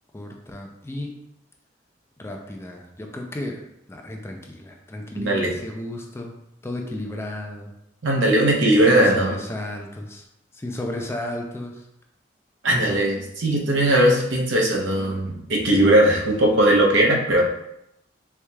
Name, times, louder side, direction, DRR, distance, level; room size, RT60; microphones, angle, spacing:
voice 1, 0.1-1.1 2.2-3.6 3.9-6.3 6.6-7.7 8.9-10.3 10.5-11.9, left 1 dB, 15° left, 1 dB, 0.4 m, -33 dB
voice 2, 5.1-5.6 8.0-9.4 12.6-17.5, right 1 dB, 80° right, -1 dB, 0.8 m, -19 dB
4.6 x 2.7 x 2.3 m, 0.82 s
head